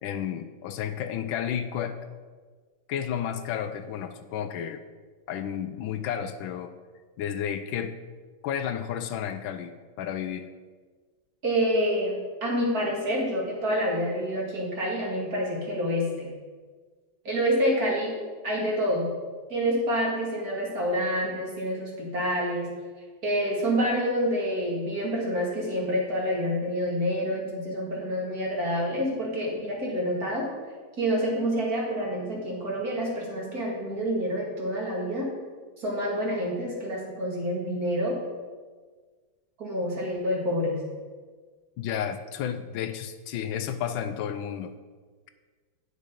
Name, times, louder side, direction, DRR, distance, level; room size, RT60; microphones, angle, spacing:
voice 1, 0.0-2.0 2.9-4.8 5.3-6.7 7.2-8.0 8.4-9.7 10.0-10.5 41.8-44.7, left 9 dB, 80° left, 10 dB, 1.3 m, -32 dB
voice 2, 11.4-16.3 17.2-18.1 18.4-19.1 19.5-22.7 23.2-30.5 31.0-35.3 35.8-38.2 39.6-40.8, equal, 50° right, -2 dB, 2.4 m, -27 dB
9.5 x 6.4 x 5.1 m, 1.5 s
omnidirectional pair, 2.2 m